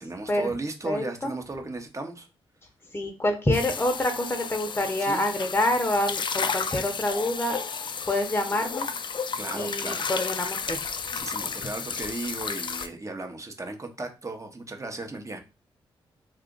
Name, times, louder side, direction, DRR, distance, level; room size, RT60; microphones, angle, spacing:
voice 1, 0.0-2.3 5.0-5.2 9.4-10.1 11.1-15.4, right 2 dB, 30° right, 0.9 m, -35 dB
voice 2, 0.9-1.3 2.9-7.6 8.1-8.9 9.5-10.8, left 1 dB, 20° left, 0.7 m, -27 dB
sound 1, 3.5-12.9, left 5 dB, 50° left, 0.4 m, -32 dB
2.8 x 2.4 x 3.7 m
supercardioid pair, 45°, 10 cm